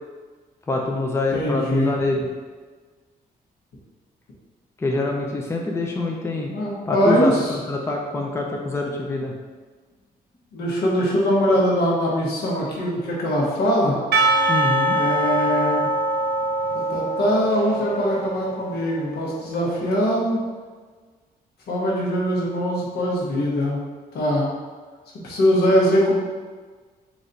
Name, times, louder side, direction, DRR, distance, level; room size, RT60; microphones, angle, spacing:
voice 1, 0.7-2.3 4.8-6.5 6.9-9.3 14.5-15.0, left 2 dB, 15° left, 0 dB, 0.5 m, -25 dB
voice 2, 1.3-1.9 6.5-7.6 10.5-14.0 14.9-15.9 16.7-20.4 21.7-23.8 24.1-24.5 25.2-26.2, equal, 85° left, -4 dB, 1.3 m, -22 dB
Percussion / Church bell, 14.1-18.9, right 2 dB, 85° right, 0.7 m, -23 dB
4.0 x 3.1 x 4.0 m, 1.4 s
cardioid pair, 130°, 16 cm